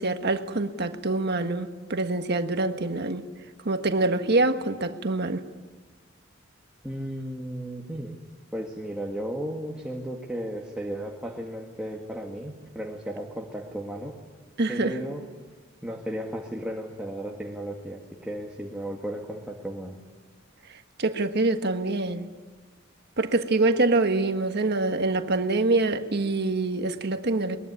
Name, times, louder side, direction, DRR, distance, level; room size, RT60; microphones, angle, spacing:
voice 1, 0.0-3.2 3.6-5.4 14.6-15.0 21.0-22.3 23.2-27.6, right 2 dB, 55° right, 1.5 m, -25 dB
voice 2, 6.8-8.2 8.5-14.1 14.7-15.2 15.8-20.0, right 1 dB, 5° right, 1.9 m, -34 dB
22.0 x 22.0 x 9.8 m
head